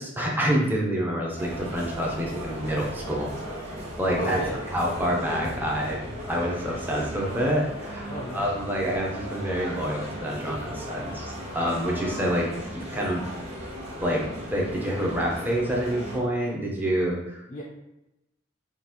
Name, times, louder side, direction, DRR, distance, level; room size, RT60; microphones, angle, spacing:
voice 1, 0.0-3.3 4.0-4.4 4.7-6.0 6.3-13.2 14.0-17.4, equal, 10° right, -2 dB, 0.8 m, -27 dB
sound 1, 1.4-16.2, equal, 35° right, 1.0 m, -36 dB
voice 2, 4.2-4.6 8.0-8.5 17.5-17.6, equal, 35° left, -4 dB, 0.6 m, -33 dB
5.7 x 2.6 x 3.0 m, 0.92 s
head